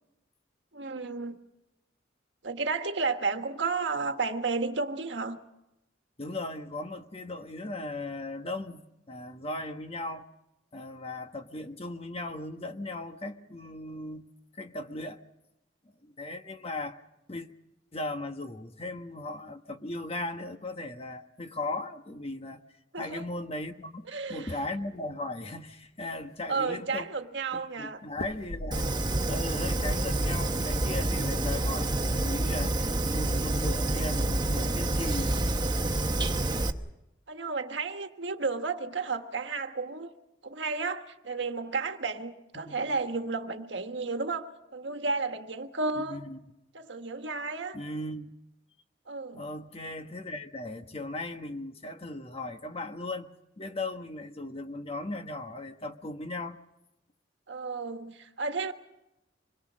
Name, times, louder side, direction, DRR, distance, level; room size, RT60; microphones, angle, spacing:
voice 1, 0.7-1.3 2.4-5.4 22.9-23.2 24.1-24.6 26.5-28.0 37.3-40.1 40.4-46.2 46.7-47.8 49.1-49.5 57.5-58.7, right 4 dB, 70° right, 1.5 m, -32 dB
voice 2, 6.2-10.2 10.7-14.3 14.5-15.2 16.0-17.0 17.3-17.5 17.9-22.6 23.0-27.1 27.5-28.9 29.3-35.4 42.5-42.8 46.0-46.4 47.7-48.3 49.3-53.3 53.6-56.6, left 2 dB, 35° left, 1.3 m, -37 dB
sound 1, 24.3-25.2 25.6-25.7 26.0-26.7 28.1-29.4 29.7-30.2, left 1 dB, 60° left, 1.3 m, -41 dB
Fire, 28.7-36.7, right 2 dB, 25° right, 1.1 m, -28 dB
26.0 x 22.0 x 6.3 m
head